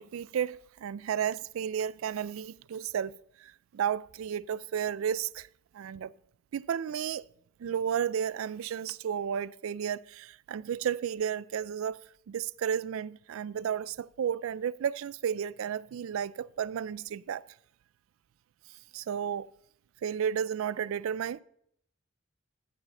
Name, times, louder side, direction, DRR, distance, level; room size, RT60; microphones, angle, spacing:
voice 1, 0.0-3.1 3.4-5.5 5.7-6.1 6.5-7.3 7.6-12.0 12.3-17.5 18.9-19.5 20.0-21.4, right 8 dB, 75° right, 0.3 m, -32 dB
14.5 x 4.9 x 6.5 m
head